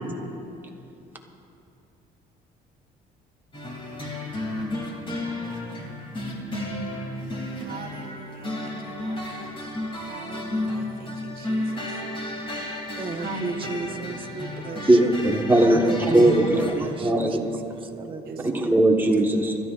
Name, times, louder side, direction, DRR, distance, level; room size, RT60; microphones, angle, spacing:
sound 1, 3.5-16.7, left 1 dB, 30° left, 2.7 m, -32 dB
voice 1, 7.6-9.3 10.0-12.0 13.2-14.0 18.3-18.8, right 6 dB, 65° right, 5 dB, 1.1 m, -43 dB
voice 2, 13.0-15.1 15.6-18.6, right 4 dB, 30° right, 4 dB, 1.1 m, -35 dB
voice 3, 14.9-17.5 18.4-19.6, right 1 dB, 10° right, 0 dB, 1.5 m, -19 dB
27.0 x 13.0 x 2.5 m, 2.8 s
cardioid pair, 110°, 17 cm